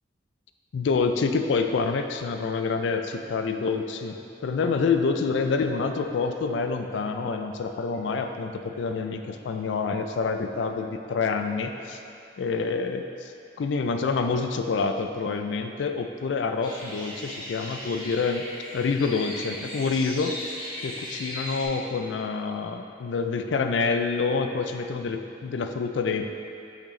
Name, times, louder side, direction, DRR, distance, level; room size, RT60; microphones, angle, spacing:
voice 1, 0.7-4.2 4.4-12.0 12.4-18.4 18.7-20.4 20.8-26.3, left 4 dB, 80° left, 6 dB, 0.4 m, -27 dB
sound 1, 16.6-21.7, left 1 dB, 25° left, 1.2 m, -37 dB
6.3 x 6.1 x 3.1 m, 2.5 s
head